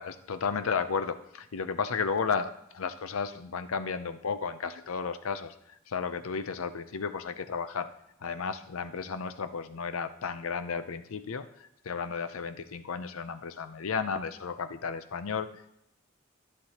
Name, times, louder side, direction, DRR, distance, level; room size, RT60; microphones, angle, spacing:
voice 1, 0.0-5.5 5.9-7.9 8.2-11.5 11.8-15.5, left 5 dB, 90° left, 11 dB, 0.6 m, -33 dB
11.5 x 10.5 x 2.9 m, 0.80 s
head